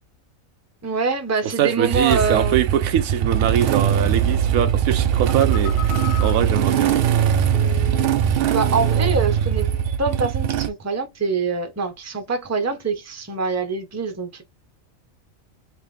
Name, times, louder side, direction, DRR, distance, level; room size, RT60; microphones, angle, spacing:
voice 1, 0.8-2.6 8.5-9.7 10.0-14.4, right 4 dB, 15° right, 0.7 m, -24 dB
voice 2, 1.4-5.8 6.2-7.0, right 10 dB, 90° right, 1.1 m, -22 dB
Motorcycle / Engine starting, 1.8-10.7, right 9 dB, 60° right, 0.6 m, -21 dB
Telephone, 5.3-8.3 8.6-9.2 9.6-9.9, left 8 dB, 60° left, 0.5 m, -36 dB
3.7 x 2.8 x 3.1 m
omnidirectional pair, 1.4 m